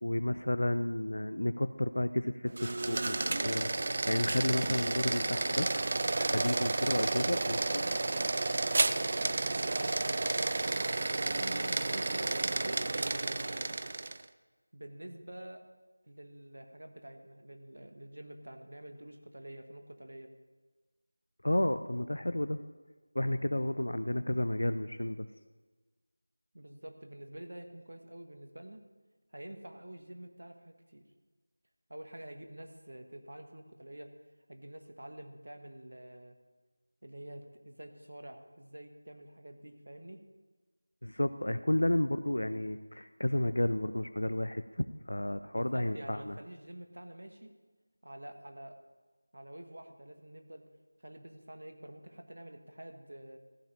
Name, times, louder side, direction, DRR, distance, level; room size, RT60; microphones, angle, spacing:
voice 1, 0.0-3.7 4.1-5.7 6.1-7.8 21.4-22.6 23.1-25.3 41.0-46.4, left 1 dB, 75° left, 10 dB, 0.5 m, -32 dB
sound 1, 2.5-14.2, right 2 dB, 35° right, 0.4 m, -31 dB
voice 2, 7.2-10.0 11.1-13.8 14.7-15.7 16.0-20.3 26.5-28.8 29.3-31.1 31.9-34.1 34.5-36.4 37.0-40.2 45.5-47.5 48.0-48.7 49.3-50.7 51.0-53.4, right 1 dB, 70° right, 6 dB, 1.3 m, -48 dB
14.5 x 5.1 x 7.2 m, 1.3 s
figure-of-eight pair, 175°, 0 cm